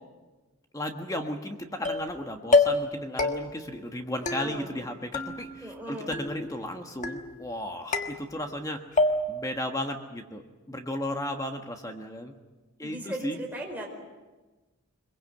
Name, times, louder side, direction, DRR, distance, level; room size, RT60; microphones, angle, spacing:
voice 1, 0.7-8.8 9.3-10.4 10.7-12.3 12.8-13.4, left 1 dB, 15° left, 5 dB, 1.3 m, -34 dB
sound 1, 1.8-2.2 2.5-2.9 3.2-3.7 4.3-4.9 5.1-5.8 6.1-6.6 7.0-7.5 7.9-8.6 9.0-9.5, left 3 dB, 35° left, 1.4 m, -27 dB
voice 2, 4.2-4.7 5.6-6.1 12.8-13.9, equal, 10° right, -1 dB, 4.6 m, -38 dB
22.5 x 22.5 x 7.9 m, 1.2 s
head